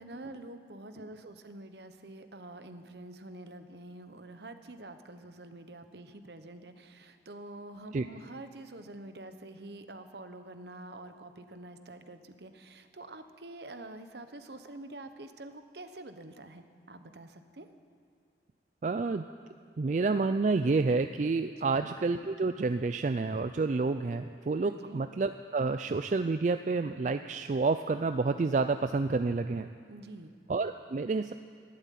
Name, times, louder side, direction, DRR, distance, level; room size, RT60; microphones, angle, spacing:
voice 1, 0.0-17.7 21.5-21.9 24.6-25.0 29.9-30.3, right 2 dB, 65° right, 9 dB, 1.0 m, -47 dB
voice 2, 18.8-19.3 19.8-29.7 30.5-31.3, right 3 dB, 40° right, 9 dB, 0.4 m, -29 dB
12.5 x 12.0 x 9.3 m, 2.4 s
head